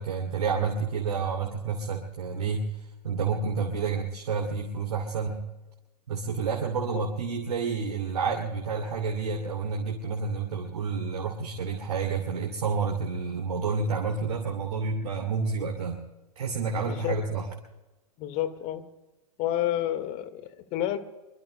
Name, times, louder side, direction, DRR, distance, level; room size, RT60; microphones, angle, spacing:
voice 1, 0.0-2.7 3.0-5.4 6.1-16.0 16.4-17.4, right 5 dB, 65° right, 0 dB, 2.6 m, -29 dB
voice 2, 16.8-17.2 18.2-18.8 19.4-21.0, left 12 dB, 40° left, 11 dB, 1.6 m, -30 dB
25.0 x 24.0 x 2.2 m, 1.1 s
figure-of-eight pair, 100°, 20 cm